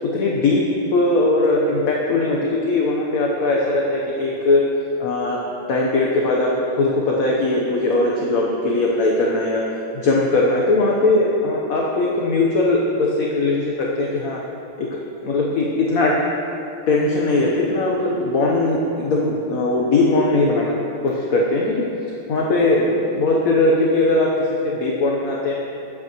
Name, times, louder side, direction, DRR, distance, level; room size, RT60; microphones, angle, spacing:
voice 1, 0.0-4.6 5.0-5.4 5.7-9.6 9.9-14.4 14.8-16.2 16.9-21.9 22.3-24.3 24.6-25.5, left 2 dB, 50° left, -2 dB, 1.2 m, -20 dB
21.0 x 8.4 x 3.1 m, 2.9 s
omnidirectional pair, 2.3 m